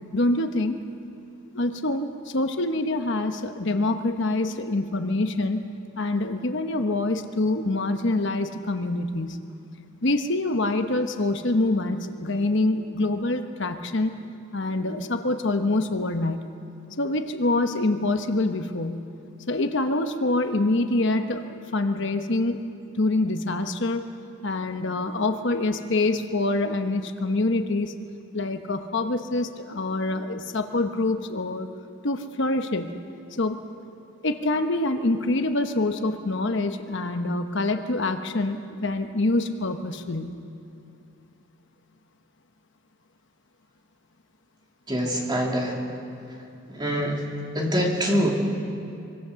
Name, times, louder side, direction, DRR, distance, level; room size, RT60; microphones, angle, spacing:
voice 1, 0.1-0.8 1.5-5.7 5.9-9.4 10.0-14.2 14.5-16.4 17.0-19.0 19.5-22.6 22.9-24.1 24.4-27.9 28.3-31.7 32.0-33.0 33.3-33.6 34.2-40.4, left 2 dB, 55° left, 7 dB, 1.0 m, -25 dB
voice 2, 44.9-45.8 46.7-47.3 47.5-48.3, equal, 20° right, -1 dB, 2.9 m, -24 dB
24.5 x 24.0 x 6.9 m, 2.6 s
head